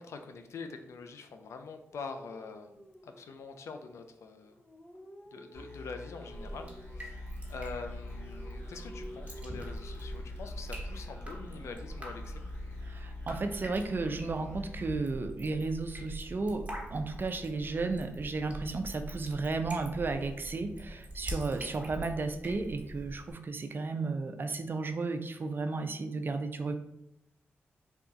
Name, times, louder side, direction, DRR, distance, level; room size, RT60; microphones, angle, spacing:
voice 1, 0.0-2.8 3.0-4.6 5.3-12.4, left 4 dB, 75° left, 7 dB, 0.4 m, -44 dB
sound 1, 1.9-3.6 4.4-7.1 7.9-10.5 11.6-12.2, equal, 20° left, 0.8 m, -52 dB
sound 2, 5.5-15.8, left 3 dB, 55° left, 1.4 m, -46 dB
Drip, 6.3-23.3, right 1 dB, 25° right, 1.2 m, -43 dB
voice 2, 12.9-26.8, right 3 dB, 45° right, 8 dB, 0.5 m, -34 dB
3.4 x 2.4 x 4.0 m, 0.82 s
cardioid pair, 50°, 5 cm